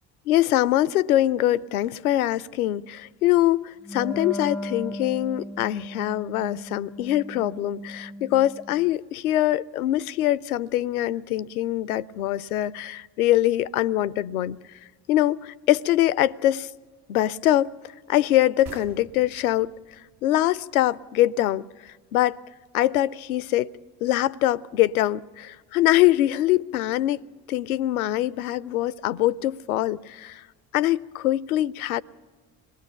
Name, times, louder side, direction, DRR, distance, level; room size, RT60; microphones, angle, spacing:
voice 1, 0.3-14.6 15.1-16.7 17.1-17.8 18.1-19.7 20.2-21.7 22.1-22.4 22.7-23.7 24.0-30.5 30.7-32.0, left 14 dB, 75° left, 0.5 m, -23 dB
Wind instrument woodwind instrument, 3.8-8.9, left 1 dB, 5° left, 0.5 m, -37 dB
sound 1, 18.7-22.1, right 4 dB, 60° right, 1.4 m, -48 dB
26.0 x 20.0 x 5.7 m
figure-of-eight pair, 50°, 44 cm